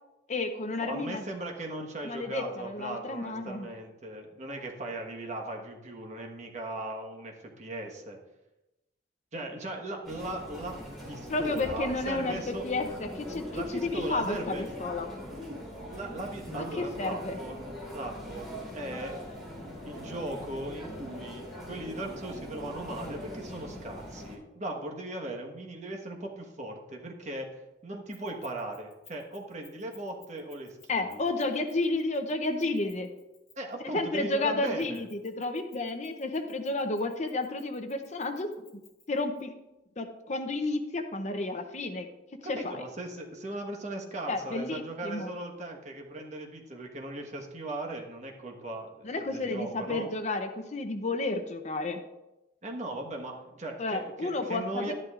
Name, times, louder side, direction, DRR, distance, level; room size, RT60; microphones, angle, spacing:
voice 1, 0.3-1.2 2.0-3.7 11.3-15.1 16.7-17.4 30.9-33.1 33.9-38.5 39.1-39.5 40.0-42.1 42.5-42.8 44.3-45.3 49.0-52.0 53.8-54.9, left 2 dB, 40° left, 7 dB, 0.7 m, -31 dB
voice 2, 0.8-8.2 9.3-10.8 11.1-12.6 13.5-14.7 15.9-19.2 19.8-27.5 27.8-31.2 33.6-35.1 42.4-50.1 52.6-54.9, right 1 dB, 40° right, 1 dB, 1.3 m, -38 dB
Chatter, 10.0-24.4, left 1 dB, ahead, 3.1 m, -41 dB
Keys jangling, 28.1-33.8 34.6-39.4, left 6 dB, 20° left, 3.1 m, -58 dB
12.0 x 11.0 x 2.5 m, 0.98 s
head